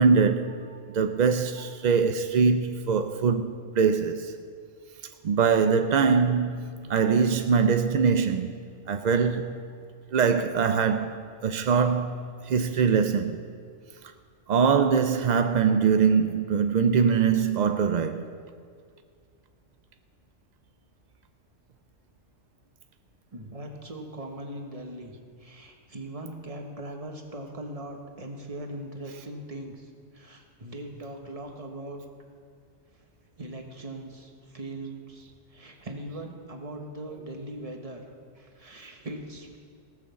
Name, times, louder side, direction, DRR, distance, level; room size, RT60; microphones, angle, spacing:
voice 1, 0.0-4.3 5.2-8.6 8.9-9.6 10.1-13.4 14.5-18.2, right 6 dB, 60° right, 0.4 m, -23 dB
voice 2, 23.3-32.0 33.4-38.0 38.3-39.6, right 1 dB, 30° right, 1.3 m, -40 dB
17.5 x 6.3 x 7.0 m
omnidirectional pair, 1.3 m